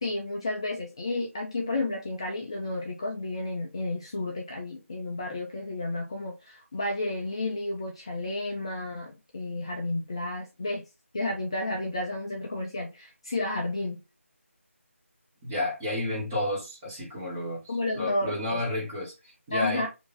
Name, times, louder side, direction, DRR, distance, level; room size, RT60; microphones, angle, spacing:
voice 1, 0.0-10.8 11.1-14.0 17.7-18.6 19.5-19.9, left 2 dB, 20° left, 0.4 m, -32 dB
voice 2, 15.4-19.9, left 1 dB, 15° right, 1.2 m, -31 dB
3.4 x 2.6 x 3.5 m
figure-of-eight pair, 165°, 8 cm